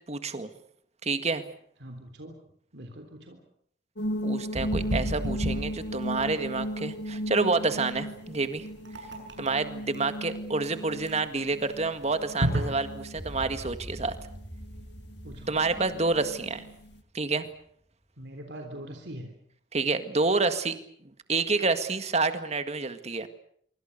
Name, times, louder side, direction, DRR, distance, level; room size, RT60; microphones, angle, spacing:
voice 1, 0.1-0.5 1.0-1.4 4.2-8.7 9.4-14.2 15.5-16.6 17.1-17.5 19.7-20.8 21.3-23.3, right 3 dB, 40° right, 9 dB, 1.9 m, -28 dB
voice 2, 1.8-2.4 2.7-3.4 15.2-15.5 18.2-19.3, right 1 dB, 70° right, 5 dB, 3.6 m, -42 dB
sound 1, 4.0-17.0, equal, 70° left, 2.0 m, -37 dB
sound 2, 4.5-13.3, equal, 85° right, 7.7 m, -33 dB
sound 3, 13.2-17.5, equal, 5° left, 4.4 m, -44 dB
26.0 x 24.5 x 6.8 m, 0.66 s
head